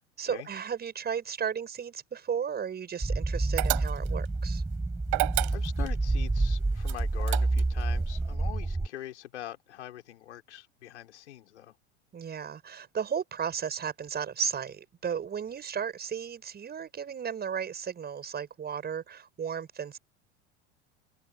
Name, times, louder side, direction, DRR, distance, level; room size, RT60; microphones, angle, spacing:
voice 1, 0.2-4.6 12.1-20.0, right 7 dB, 25° right, 7.1 m, -34 dB
sound 1, 3.0-8.9, right 2 dB, 10° right, 1.7 m, -28 dB
sound 2, 3.6-4.3 5.1-6.0 6.8-7.8, right 40 dB or more, 55° right, 4.8 m, -30 dB
voice 2, 5.5-11.7, left 12 dB, 70° left, 4.0 m, -43 dB
open air
figure-of-eight pair, 80°, 35 cm